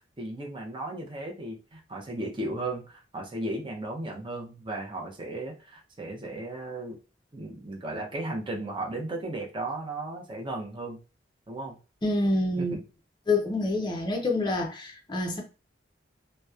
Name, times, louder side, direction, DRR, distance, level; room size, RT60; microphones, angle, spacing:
voice 1, 0.2-7.0 7.3-11.0 11.5-11.8 12.6-12.8, right 2 dB, 25° right, 0.5 m, -35 dB
voice 2, 12.0-12.7 13.3-15.4, left 2 dB, 25° left, 0.5 m, -27 dB
2.8 x 2.0 x 2.3 m
head